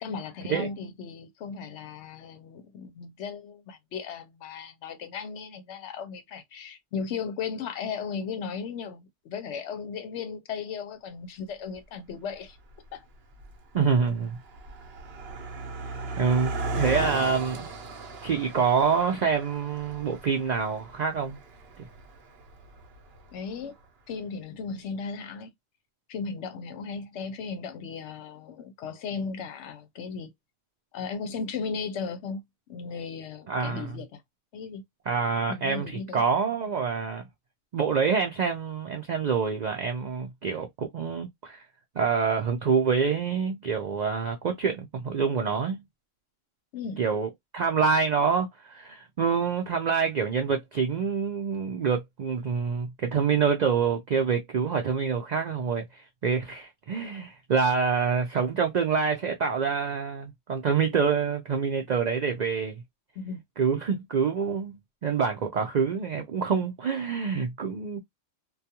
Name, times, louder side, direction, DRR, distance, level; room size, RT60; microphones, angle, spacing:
voice 1, 0.0-12.6 12.9-13.1 23.3-23.8 24.1-25.5 26.1-30.3 30.9-32.4 32.7-34.2 34.5-34.8 35.5-36.2 46.7-47.0 63.2-63.4, left 5 dB, 70° left, 0.8 m, -36 dB
Car passing by, 11.7-11.8 12.6-12.9 13.1-23.6, right 2 dB, 60° right, 0.9 m, -37 dB
voice 2, 13.7-14.4 16.2-17.7 18.2-21.4 21.8-21.9 33.5-33.8 35.1-37.2 37.7-41.6 42.0-45.8 47.0-62.8 63.6-68.0, right 6 dB, 85° right, 0.4 m, -26 dB
2.3 x 2.3 x 2.7 m
omnidirectional pair, 1.3 m